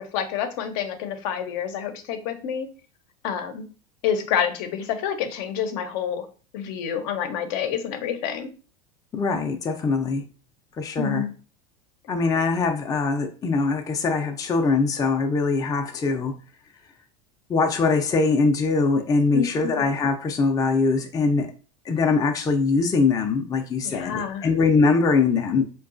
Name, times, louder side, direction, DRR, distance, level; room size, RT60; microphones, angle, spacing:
voice 1, 0.0-2.7 3.2-3.7 4.0-6.3 6.5-8.5 11.0-11.3 19.3-19.7 23.8-24.5, left 8 dB, 65° left, 8 dB, 0.7 m, -28 dB
voice 2, 9.1-10.2 10.8-11.2 12.1-16.3 17.5-21.5 21.9-25.6, left 4 dB, 20° left, 3 dB, 0.5 m, -22 dB
4.6 x 2.3 x 2.5 m, 0.37 s
supercardioid pair, 125°, 18 cm